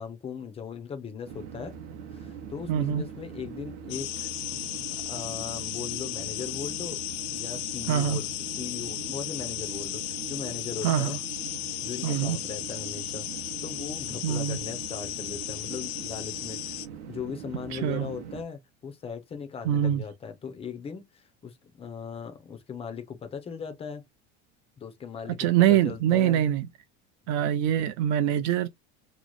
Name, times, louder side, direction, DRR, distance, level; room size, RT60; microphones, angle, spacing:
voice 1, 0.0-1.7 2.1-7.0 7.3-8.3 8.6-11.2 11.6-16.8 17.1-24.0 24.8-26.4, left 6 dB, 15° left, 0.5 m, -39 dB
sound 1, 1.2-18.4, right 8 dB, 80° right, 0.9 m, -42 dB
voice 2, 2.7-3.0 7.9-8.2 10.8-11.2 12.0-12.4 14.2-14.6 17.7-18.1 19.6-20.0 25.4-26.7 27.3-28.7, right 11 dB, 50° right, 0.6 m, -24 dB
sound 2, 3.9-16.9, left 16 dB, 70° left, 0.6 m, -35 dB
3.1 x 2.0 x 3.9 m
cardioid pair, 160°, 34 cm